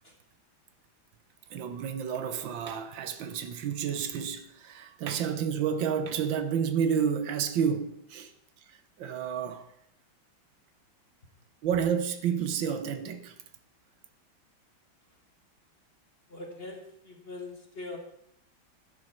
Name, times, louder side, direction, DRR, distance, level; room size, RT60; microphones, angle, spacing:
voice 1, 1.5-8.3 8.6-9.7 11.6-13.3, right 7 dB, 75° right, 1.6 m, -30 dB
voice 2, 16.3-18.0, left 2 dB, 35° left, 1.5 m, -42 dB
11.0 x 11.0 x 4.3 m
omnidirectional pair, 2.1 m